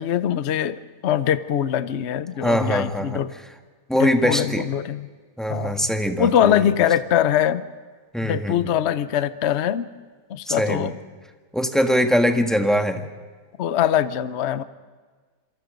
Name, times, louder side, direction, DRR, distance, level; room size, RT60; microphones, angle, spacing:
voice 1, 0.0-3.3 4.0-5.1 5.5-5.9 6.2-7.6 8.2-9.9 10.3-11.0 13.6-14.6, left 10 dB, 60° left, 13 dB, 0.7 m, -22 dB
voice 2, 2.4-3.2 3.9-4.6 5.4-6.6 8.1-8.7 10.5-10.9 11.5-13.1, equal, ahead, 5 dB, 1.1 m, -22 dB
27.0 x 24.5 x 5.2 m, 1.5 s
omnidirectional pair, 2.1 m